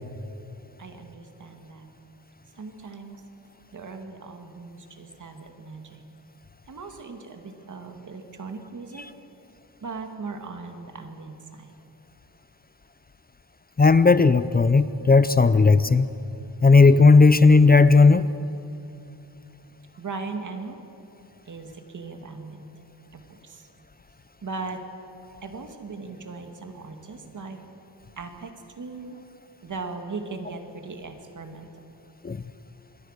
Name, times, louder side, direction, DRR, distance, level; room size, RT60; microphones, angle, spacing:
voice 1, 0.8-1.9 2.6-3.2 3.7-6.0 6.7-9.1 9.8-11.7 20.0-20.8 21.5-22.7 23.1-23.7 24.4-24.8 25.4-27.6 28.2-29.2 29.6-31.7, right 4 dB, 45° right, 5 dB, 2.2 m, -38 dB
voice 2, 13.8-16.1 16.6-18.3 32.2-32.4, left 4 dB, 25° left, 14 dB, 0.5 m, -15 dB
27.0 x 22.0 x 6.6 m, 2.8 s
wide cardioid pair, 160°, 41 cm